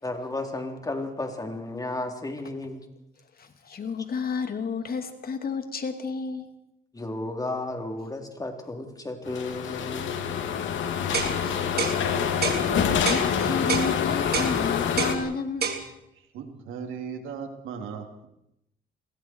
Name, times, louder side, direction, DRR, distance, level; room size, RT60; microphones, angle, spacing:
voice 1, 0.0-2.8 6.9-10.2, left 2 dB, 20° left, 4 dB, 4.0 m, -33 dB
voice 2, 3.4-6.5 11.4-11.9 12.8-15.8, left 5 dB, 50° left, 7 dB, 2.7 m, -32 dB
sound 1, 9.2-15.1, left 7 dB, 75° left, 2.7 m, -26 dB
sound 2, 11.1-11.4 11.8-12.0 12.4-12.6 13.1-13.3 13.7-13.9 14.3-14.5 15.0-15.2 15.6-15.8, right 6 dB, 50° right, 3.4 m, -27 dB
voice 3, 16.3-18.3, right 6 dB, 90° right, 4 dB, 3.5 m, -37 dB
30.0 x 21.5 x 4.8 m, 0.82 s
cardioid pair, 90°, 20 cm